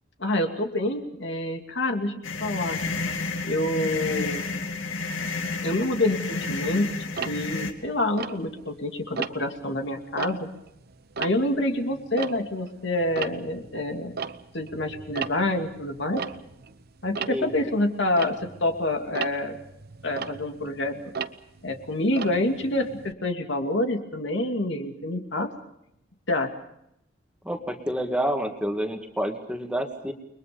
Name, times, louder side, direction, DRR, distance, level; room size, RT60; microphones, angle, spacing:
voice 1, 0.2-2.1 2.4-2.8 3.4-4.4 5.6-10.5 11.2-14.2 14.5-16.2 17.0-18.3 18.6-19.6 20.0-20.9 21.6-25.5 26.3-26.5, left 1 dB, 60° left, 4 dB, 2.7 m, -27 dB
sound 1, 2.2-7.7, left 3 dB, 80° left, 2.4 m, -31 dB
Tick-tock, 7.1-8.8 9.2-9.6 10.0-12.8 13.0-23.1, right 6 dB, 50° right, 0.9 m, -37 dB
voice 2, 27.5-30.1, equal, 5° right, 3 dB, 2.1 m, -28 dB
30.0 x 22.0 x 5.3 m, 0.78 s
head